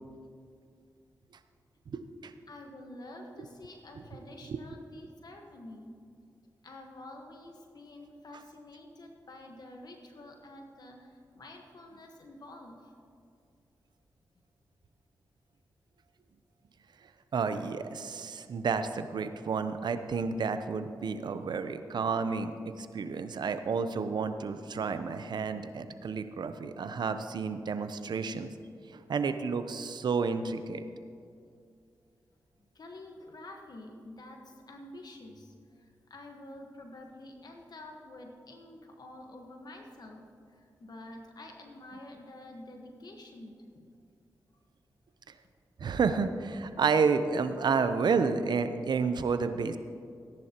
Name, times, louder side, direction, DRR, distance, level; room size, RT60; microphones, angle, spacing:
voice 1, 1.9-2.3 4.5-4.6 17.3-28.5 28.9-30.8 45.8-49.8, right 5 dB, 70° right, 10 dB, 0.7 m, -30 dB
voice 2, 2.5-5.9 6.6-12.9 24.8-24.9 32.7-43.9, left 1 dB, 60° left, 2 dB, 1.4 m, -48 dB
17.5 x 10.5 x 3.0 m, 2.3 s
supercardioid pair, 45°, 8 cm